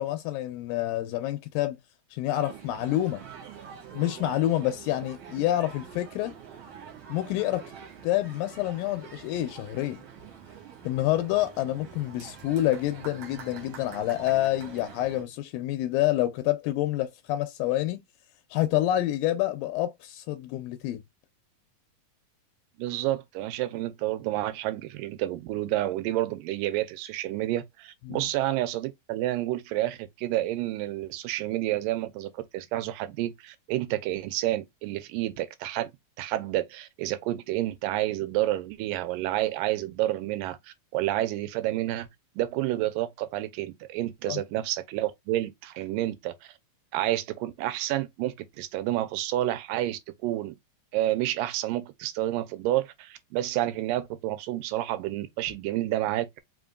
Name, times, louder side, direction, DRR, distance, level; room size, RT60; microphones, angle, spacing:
voice 1, 0.0-1.8 2.1-3.2 3.9-6.4 7.1-7.6 8.0-10.0 10.8-18.0 18.5-21.0 28.1-28.2 44.3-44.4, left 14 dB, 80° left, 2.2 m, -28 dB
sound 1, 2.3-15.2, right 7 dB, 55° right, 2.1 m, -46 dB
voice 2, 22.8-35.9 36.2-42.1 42.4-46.3 46.9-50.6 50.9-56.4, right 15 dB, 80° right, 2.2 m, -29 dB
5.0 x 3.9 x 2.3 m
omnidirectional pair, 4.1 m